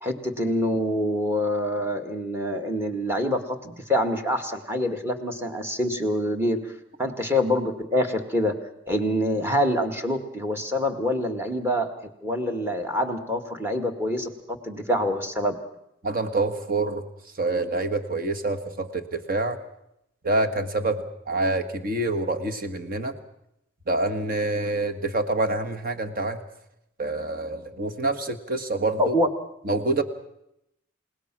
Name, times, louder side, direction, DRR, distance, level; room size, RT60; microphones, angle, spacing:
voice 1, 0.0-6.7 7.0-8.6 8.9-11.9 12.2-14.3 14.6-15.6 29.0-29.3, left 1 dB, 10° right, 6 dB, 1.9 m, -25 dB
voice 2, 16.0-17.0 17.4-19.6 20.2-23.2 23.9-26.4 27.0-29.1 29.6-30.0, right 2 dB, 45° right, 7 dB, 1.7 m, -26 dB
29.0 x 18.5 x 6.1 m, 0.80 s
head